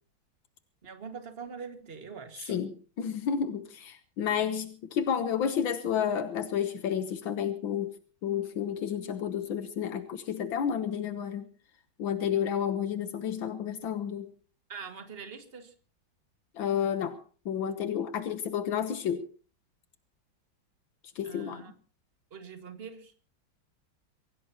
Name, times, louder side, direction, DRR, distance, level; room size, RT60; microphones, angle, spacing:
voice 1, 0.8-2.6 14.7-15.7 21.2-21.7 22.3-23.1, right 6 dB, 30° right, 2.0 m, -43 dB
voice 2, 2.5-7.9 8.2-11.5 12.0-14.3 16.6-17.2 17.5-19.3 21.2-21.6, left 8 dB, 85° left, 1.9 m, -31 dB
24.0 x 16.5 x 2.9 m
omnidirectional pair, 2.1 m